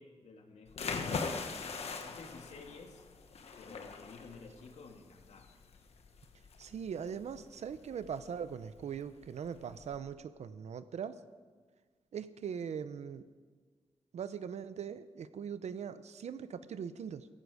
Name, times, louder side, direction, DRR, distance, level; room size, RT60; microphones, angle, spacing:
voice 1, 0.0-3.0 3.6-5.5, left 4 dB, 85° left, 3 dB, 2.0 m, -53 dB
sound 1, 0.7-10.0, left 4 dB, 65° left, 1.3 m, -42 dB
voice 2, 6.6-11.2 12.1-13.3 14.1-17.3, right 7 dB, 85° right, 13 dB, 0.7 m, -41 dB
17.0 x 16.0 x 5.0 m, 1.5 s
wide cardioid pair, 170°, 11 cm